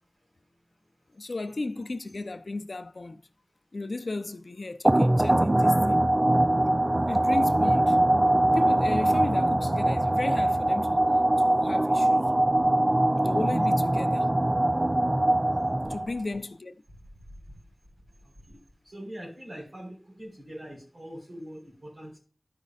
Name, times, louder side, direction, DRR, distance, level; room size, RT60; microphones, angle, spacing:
voice 1, 1.1-3.2 3.7-6.0 7.1-8.0 8.5-11.0 11.4-12.3 13.2-14.3 15.8-16.8, left 2 dB, 80° left, 0.5 m, -34 dB
sound 1, 4.8-16.2, right 1 dB, 35° right, 0.5 m, -22 dB
voice 2, 18.8-22.2, equal, 75° right, 4.4 m, -42 dB
12.5 x 5.3 x 2.4 m
wide cardioid pair, 50°, 0 cm